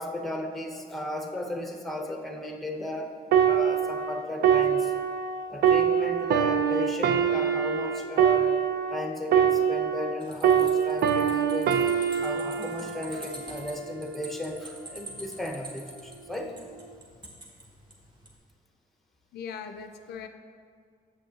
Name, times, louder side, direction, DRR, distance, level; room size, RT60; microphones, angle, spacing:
voice 1, 0.0-3.2 3.4-4.9 5.5-8.6 8.9-11.8 12.1-16.5, left 1 dB, ahead, 3 dB, 0.7 m, -35 dB
sound 1, 3.3-10.2 10.4-14.0 14.7-14.9, right 8 dB, 75° right, 0.4 m, -24 dB
sound 2, 10.2-18.4, right 1 dB, 30° right, 1.3 m, -46 dB
voice 2, 19.3-20.3, left 6 dB, 85° left, 7 dB, 0.4 m, -39 dB
7.4 x 6.4 x 2.8 m, 2.1 s
cardioid pair, 90°, 16 cm